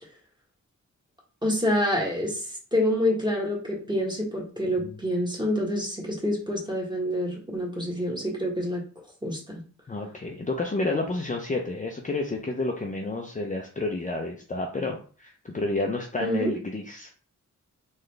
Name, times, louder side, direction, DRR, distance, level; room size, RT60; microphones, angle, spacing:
voice 1, 1.4-2.4 2.7-8.8 9.2-9.6 16.2-16.5, left 1 dB, 15° right, -3 dB, 1.5 m, -27 dB
voice 2, 9.9-17.1, left 2 dB, 25° left, 1 dB, 0.5 m, -30 dB
3.9 x 3.2 x 3.3 m, 0.41 s
wide cardioid pair, 110°, 31 cm